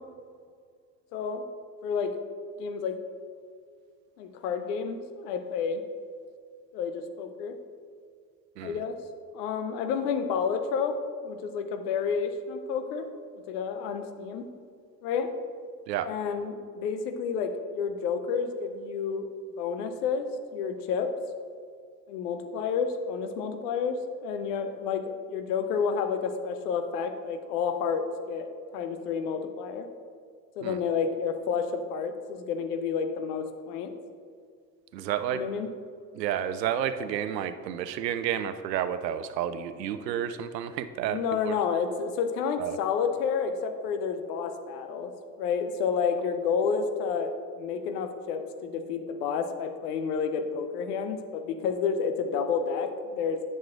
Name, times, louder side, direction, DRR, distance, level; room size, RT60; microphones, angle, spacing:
voice 1, 1.1-1.4 1.8-2.2 2.6-3.0 4.2-5.8 6.7-7.6 8.6-9.0 9.3-11.0 11.2-13.1 13.5-14.5 15.0-15.3 16.0-19.3 19.6-21.1 22.1-29.9 30.6-33.9 35.3-35.7 41.1-45.1 45.4-53.4, left 6 dB, 70° left, 8 dB, 0.8 m, -30 dB
voice 2, 34.9-35.4 36.1-41.5 42.6-42.8, right 10 dB, 85° right, 12 dB, 0.6 m, -31 dB
10.5 x 6.5 x 2.5 m, 2.1 s
hypercardioid pair, 65°, 49 cm